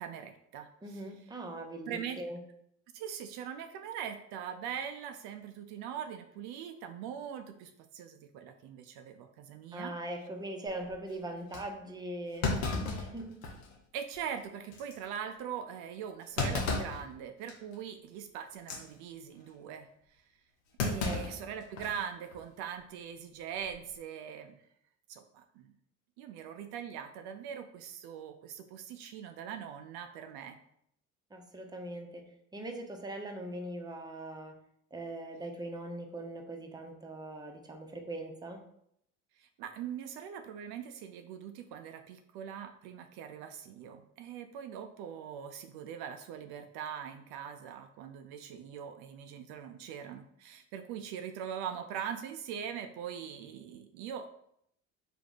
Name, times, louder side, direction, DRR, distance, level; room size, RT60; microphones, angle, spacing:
voice 1, 0.0-1.0 1.9-2.2 2.9-10.0 13.9-20.2 20.8-24.6 25.1-25.7 26.2-30.6 39.4-54.3, right 8 dB, 65° right, 6 dB, 0.5 m, -42 dB
voice 2, 0.8-2.4 9.7-12.6 12.8-13.4 21.0-21.2 31.3-32.2 32.5-34.6 34.9-38.7, right 1 dB, 10° right, 3 dB, 0.8 m, -41 dB
Thump thud, 10.7-10.9 11.5-11.6 12.4-13.8 14.1-14.2 14.7-14.9 16.4-17.0 17.5-17.7 18.5-18.8 20.8-22.0 22.3-22.4 23.5-23.9, left 3 dB, 90° left, 0.8 m, -34 dB
3.4 x 2.8 x 4.0 m, 0.72 s
hypercardioid pair, 65°, 41 cm